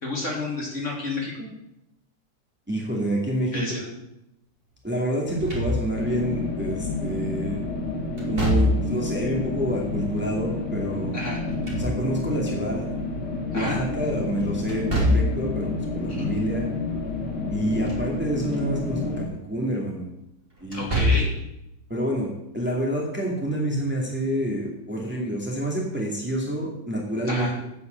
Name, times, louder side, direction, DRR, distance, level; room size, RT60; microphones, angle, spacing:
voice 1, 0.0-1.3 3.5-3.9 11.1-11.4 13.5-13.8 16.1-16.3 20.7-21.3 27.2-27.5, left 2 dB, 45° left, -2 dB, 3.1 m, -30 dB
voice 2, 2.7-3.6 4.8-7.6 8.3-11.2 11.7-12.9 13.5-16.7 17.5-20.1 20.6-21.0 21.9-27.7, right 1 dB, 5° right, -2 dB, 2.2 m, -28 dB
Slam / Thump thud, 5.3-6.2 8.2-9.1 11.3-12.4 14.7-15.5 17.6-18.1 18.5-18.6 20.6-21.4, left 1 dB, 30° right, 3.4 m, -25 dB
sound 1, 5.9-19.3, left 3 dB, 75° left, 2.5 m, -30 dB
8.4 x 8.0 x 7.8 m, 0.84 s
omnidirectional pair, 1.8 m